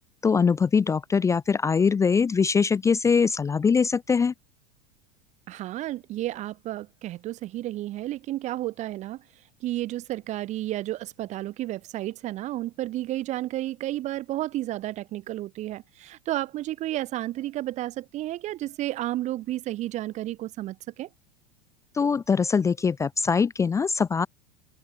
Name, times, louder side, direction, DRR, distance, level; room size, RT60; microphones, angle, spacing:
voice 1, 0.2-4.3 21.9-24.3, left 5 dB, 15° left, 0.6 m, -22 dB
voice 2, 5.5-9.2 9.6-21.1, right 15 dB, 35° right, 0.8 m, -32 dB
figure-of-eight pair, 80°, 20 cm